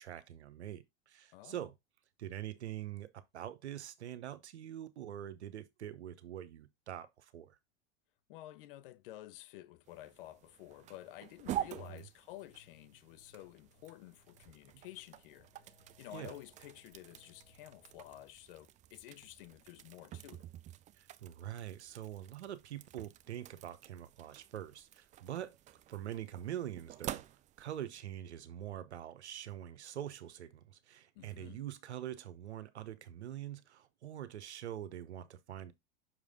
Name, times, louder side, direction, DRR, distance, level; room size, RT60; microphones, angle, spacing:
voice 1, 0.0-1.7 2.2-7.6 11.8-12.0 14.7-14.8 16.1-16.3 21.0-25.6 25.9-27.2 27.6-35.7, right 11 dB, 80° right, 0.9 m, -44 dB
voice 2, 1.3-1.7 8.3-15.5 16.0-20.5 31.2-31.6, left 15 dB, 55° left, 0.6 m, -52 dB
sound 1, 9.8-27.9, right 12 dB, 25° right, 0.4 m, -48 dB
sound 2, 12.4-18.2, left 3 dB, 75° left, 4.7 m, -68 dB
5.9 x 4.9 x 3.6 m
hypercardioid pair, 90°, 33 cm